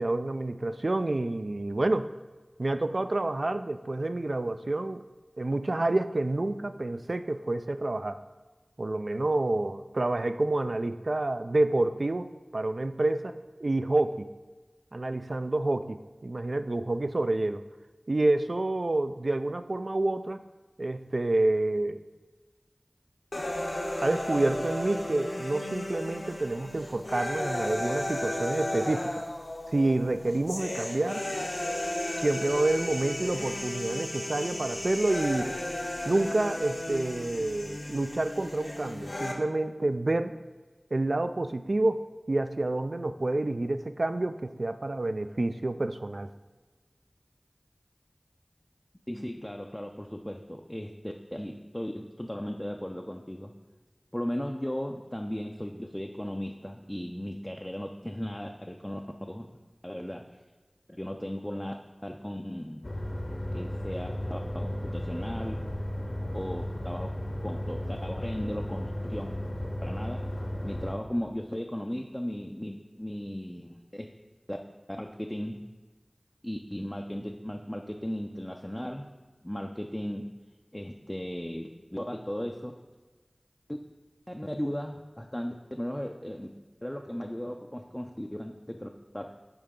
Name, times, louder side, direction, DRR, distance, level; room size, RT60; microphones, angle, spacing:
voice 1, 0.0-2.1 2.6-5.0 5.4-8.2 8.8-13.3 13.6-14.3 14.9-17.6 18.1-20.4 20.8-22.0 24.0-29.2 29.7-31.2 32.2-35.6 36.1-40.4 40.9-46.3, right 2 dB, 65° right, 11 dB, 0.3 m, -28 dB
sound 1, 23.3-39.3, left 1 dB, 75° left, 1.0 m, -34 dB
voice 2, 49.1-53.5 54.1-59.6 59.8-60.3 60.9-61.7 62.0-62.9 63.5-65.6 66.3-69.3 69.8-70.2 70.6-74.1 74.5-74.6 74.9-75.6 76.4-79.1 79.4-80.3 80.7-82.8 83.7-83.8 84.3-86.5 86.8-88.9 89.1-89.3, equal, 15° left, 2 dB, 0.4 m, -36 dB
sound 2, 62.8-70.9, left 1 dB, 45° left, 0.8 m, -34 dB
10.0 x 3.8 x 3.7 m, 1.3 s
wide cardioid pair, 50°, 0 cm